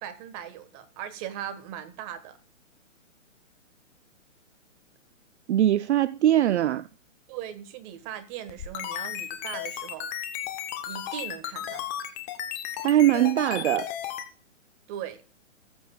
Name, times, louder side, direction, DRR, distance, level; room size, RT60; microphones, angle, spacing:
voice 1, 0.0-2.4 7.3-10.1 10.8-11.9 14.9-15.2, right 10 dB, 25° right, 1.3 m, -39 dB
voice 2, 5.5-6.9 12.8-13.9, right 12 dB, 60° right, 0.5 m, -21 dB
sound 1, 8.5-14.3, left 11 dB, 10° left, 0.4 m, -34 dB
19.0 x 7.8 x 2.3 m
hypercardioid pair, 140°, 39 cm